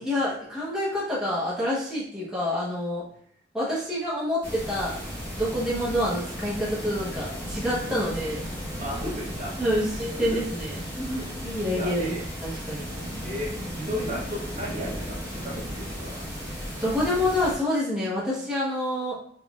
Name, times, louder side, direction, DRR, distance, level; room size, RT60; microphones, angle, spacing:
voice 1, 0.0-3.0 3.5-5.0 5.4-8.4 9.6-10.8 11.4-12.9 16.8-19.2, left 1 dB, 5° right, -8 dB, 0.9 m, -27 dB
sound 1, 4.4-17.6, equal, 10° left, 1.5 m, -35 dB
voice 2, 8.8-9.5 10.2-10.4 11.1-12.3 13.2-13.5 13.7-15.1 15.4-16.2, equal, 45° right, -5 dB, 1.0 m, -35 dB
3.7 x 3.2 x 2.4 m, 0.64 s
head